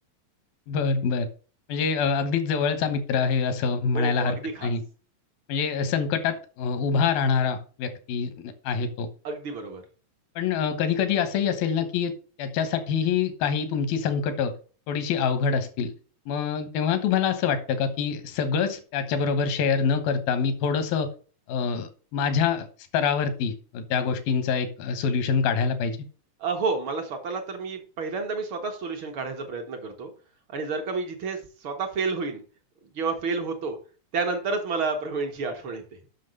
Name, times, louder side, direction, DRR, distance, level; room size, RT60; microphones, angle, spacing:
voice 1, 0.7-1.3 1.7-4.4 4.6-4.8 5.5-9.1 10.4-12.1 12.4-14.5 14.9-15.9 16.3-21.1 21.5-22.7 22.9-26.0, left 6 dB, 85° left, 9 dB, 3.1 m, -25 dB
voice 2, 3.9-4.7 9.2-9.8 26.4-30.1 30.5-32.4 32.9-33.8 34.1-35.8, right 4 dB, 50° right, 5 dB, 1.7 m, -30 dB
7.7 x 6.4 x 6.5 m, 0.39 s
omnidirectional pair, 4.1 m